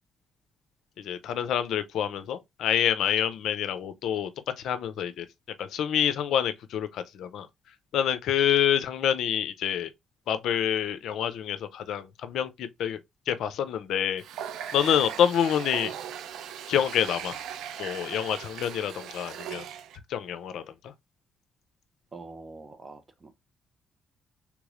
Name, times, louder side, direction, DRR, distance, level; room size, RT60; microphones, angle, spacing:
voice 1, 1.0-4.3 4.6-5.3 5.6-7.5 7.9-9.9 10.3-13.0 13.3-14.2 14.7-16.0 16.7-17.4 17.8-19.6 20.1-20.9, left 9 dB, 75° left, 0.5 m, -27 dB
Water tap faucet, 14.2-20.0, right 9 dB, 85° right, 0.4 m, -39 dB
voice 2, 22.1-23.3, right 3 dB, 30° right, 0.6 m, -45 dB
3.5 x 3.0 x 2.4 m
cardioid pair, 90°, 0 cm